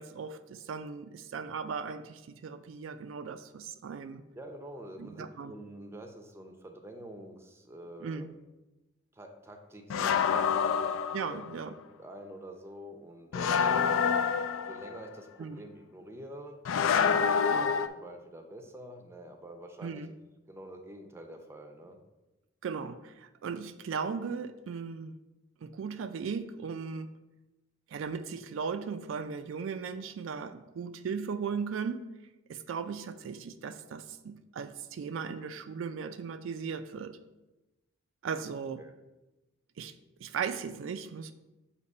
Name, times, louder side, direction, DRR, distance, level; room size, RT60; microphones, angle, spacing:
voice 1, 0.0-4.2 5.0-5.5 8.0-8.3 11.1-11.7 15.4-15.6 17.5-17.7 19.8-20.1 22.6-25.2 25.6-27.1 27.9-32.0 32.5-37.2 38.2-38.8 39.8-39.9 40.2-41.3, right 6 dB, 75° right, 10 dB, 0.3 m, -37 dB
voice 2, 4.3-8.3 9.1-11.0 11.3-11.4 12.0-14.2 14.6-16.6 16.9-20.1 20.5-22.0 38.8-38.9, equal, 15° right, 4 dB, 0.5 m, -47 dB
sound 1, 9.9-11.6 13.3-15.0 16.6-17.9, left 6 dB, 80° left, 0.3 m, -27 dB
6.6 x 2.9 x 5.3 m, 1.0 s
head